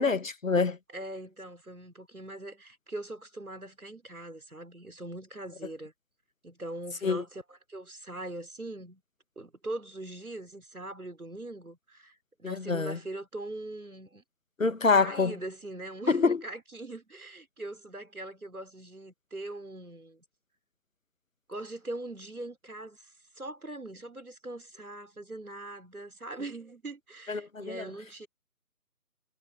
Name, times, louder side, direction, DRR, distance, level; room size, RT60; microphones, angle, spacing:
voice 1, 0.0-0.8 7.0-7.2 12.4-13.0 14.6-15.3 16.1-16.4 27.3-27.8, left 4 dB, 60° left, 1.3 m, -26 dB
voice 2, 0.9-5.9 6.4-9.0 9.4-14.2 15.0-20.2 21.5-28.3, right 2 dB, 70° right, 4.9 m, -41 dB
figure-of-eight pair, 160°, 46 cm